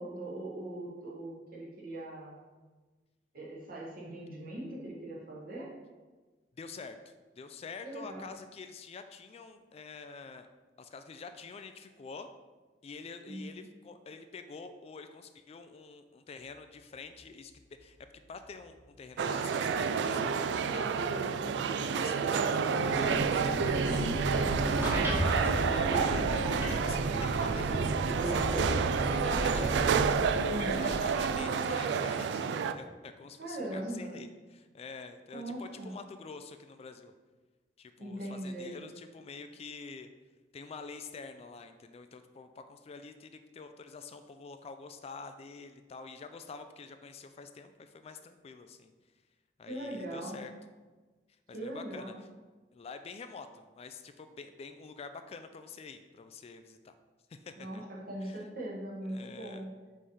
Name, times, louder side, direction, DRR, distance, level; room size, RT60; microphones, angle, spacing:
voice 1, 0.0-2.4 3.3-5.7 7.8-8.3 13.3-13.4 23.8-24.6 30.5-31.0 33.4-34.1 35.3-35.9 38.0-38.8 49.7-50.4 51.5-52.1 57.6-57.8 58.1-59.7, right 1 dB, 55° right, -4 dB, 1.6 m, -40 dB
voice 2, 6.6-10.5 10.8-12.3 12.8-17.5 17.8-18.0 18.3-21.0 21.7-24.0 25.2-26.4 26.8-29.9 30.5-37.1 37.8-40.1 40.5-48.9 49.6-50.5 51.5-52.3 52.7-56.9 57.3-57.8 58.2-58.4 59.1-59.6, left 4 dB, 35° left, 8 dB, 0.3 m, -47 dB
sound 1, 16.5-30.6, left 1 dB, 60° left, 0.9 m, -46 dB
sound 2, 19.2-32.7, right 6 dB, 70° right, 0.3 m, -29 dB
sound 3, 23.5-31.4, equal, 10° right, 1.3 m, -35 dB
5.4 x 3.2 x 5.5 m, 1.3 s
head